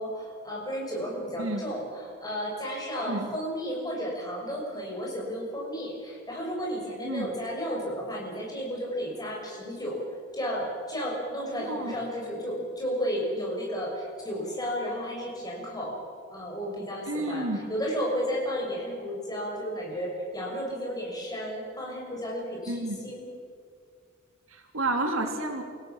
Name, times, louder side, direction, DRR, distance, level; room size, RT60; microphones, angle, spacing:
voice 1, 0.0-10.0 10.3-16.0 16.3-23.3, equal, 20° left, -2 dB, 6.8 m, -33 dB
voice 2, 11.6-12.0 17.1-17.6 22.7-23.1 24.5-25.6, right 2 dB, 85° right, 4 dB, 3.0 m, -30 dB
28.5 x 16.5 x 7.4 m, 2.1 s
head